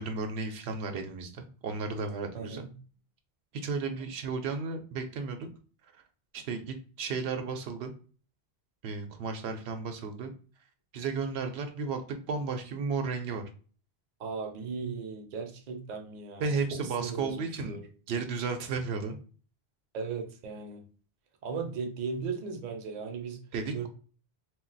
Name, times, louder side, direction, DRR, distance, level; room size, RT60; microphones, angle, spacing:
voice 1, 0.0-2.6 3.6-5.5 6.3-7.9 8.8-10.3 10.9-13.4 16.4-17.8 18.1-19.2 23.5-23.9, right 4 dB, 85° right, 0.8 m, -33 dB
voice 2, 2.3-2.7 14.2-17.9 19.9-20.9 21.4-23.4 23.7-23.9, right 5 dB, 50° right, 0.6 m, -37 dB
2.3 x 2.2 x 3.8 m
omnidirectional pair, 1.1 m